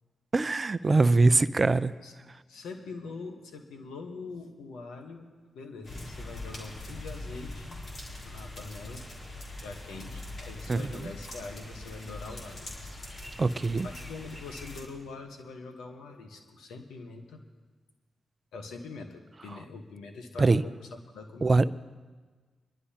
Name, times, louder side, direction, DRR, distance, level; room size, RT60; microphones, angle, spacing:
voice 1, 0.3-1.9 10.7-11.1 13.4-13.9 20.4-20.6 21.4-21.8, right 3 dB, 40° right, 15 dB, 0.5 m, -23 dB
voice 2, 2.5-5.3 5.5-7.8 8.2-9.1 9.6-12.7 13.1-13.3 13.8-17.4 18.5-21.5, left 3 dB, 80° left, 5 dB, 1.1 m, -43 dB
sound 1, 5.8-14.8, left 2 dB, 55° left, 3.2 m, -42 dB
26.0 x 11.0 x 2.9 m, 1.4 s
supercardioid pair, 40°, 0 cm